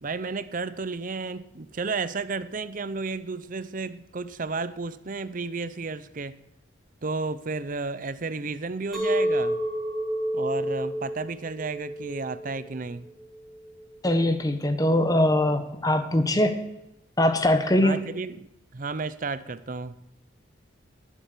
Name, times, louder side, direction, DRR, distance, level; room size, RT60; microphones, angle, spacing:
voice 1, 0.0-6.4 7.0-9.6 10.3-13.1 17.8-20.0, right 4 dB, 45° right, 0.6 m, -32 dB
Chink clink, 8.9-14.1, equal, ahead, 4.6 m, -30 dB
voice 2, 14.0-16.6 17.2-17.9, left 1 dB, 20° left, 1.1 m, -22 dB
18.5 x 7.5 x 6.7 m
head